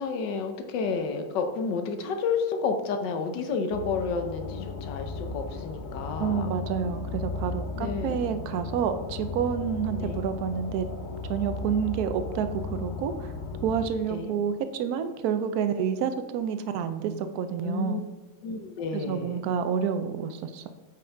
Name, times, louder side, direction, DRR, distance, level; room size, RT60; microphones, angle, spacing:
voice 1, 0.0-6.5 7.7-8.3 9.9-10.3 14.1-14.3 17.6-18.0 18.4-19.4, left 5 dB, 75° left, 6 dB, 1.4 m, -31 dB
sound 1, 3.7-13.9, left 3 dB, 55° left, 1.0 m, -35 dB
voice 2, 6.2-10.9 11.3-13.3 13.6-18.0 18.9-20.7, right 7 dB, 70° right, 9 dB, 1.0 m, -29 dB
8.5 x 5.4 x 3.3 m, 1.1 s
omnidirectional pair, 2.0 m